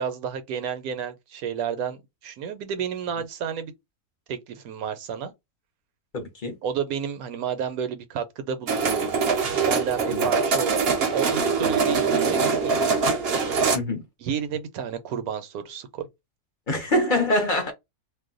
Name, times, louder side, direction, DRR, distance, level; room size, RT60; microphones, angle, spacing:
voice 1, 0.0-3.7 4.3-5.3 6.6-9.1 9.6-12.8 14.2-16.1, right 7 dB, 75° right, 1.1 m, -31 dB
voice 2, 6.1-6.5 10.1-10.3 13.7-14.0 16.7-17.7, left 1 dB, 45° left, 0.7 m, -24 dB
sound 1, 8.7-13.8, right 5 dB, 55° right, 0.8 m, -23 dB
2.6 x 2.2 x 3.7 m
omnidirectional pair, 1.6 m